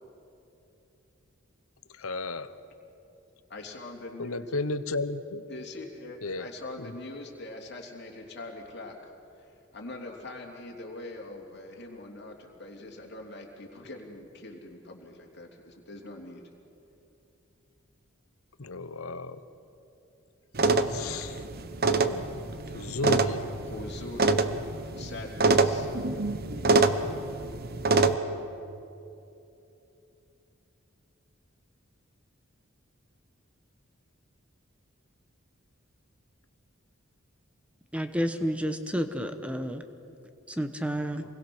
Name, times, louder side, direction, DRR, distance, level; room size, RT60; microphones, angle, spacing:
voice 1, 2.0-2.5 4.2-5.4 6.2-6.5 6.8-6.9 18.6-19.4 20.9-21.5 22.0-22.2 22.7-23.4, left 3 dB, 90° left, 13 dB, 1.0 m, -33 dB
voice 2, 3.5-4.5 5.5-16.4 23.6-24.5 24.9-25.9, left 2 dB, 55° left, 0 dB, 3.2 m, -43 dB
sound 1, 20.5-28.1, right 3 dB, 45° right, 0.9 m, -26 dB
voice 3, 37.9-39.8 40.5-41.2, equal, 5° right, 8 dB, 1.0 m, -30 dB
27.5 x 21.5 x 6.3 m, 2.8 s
head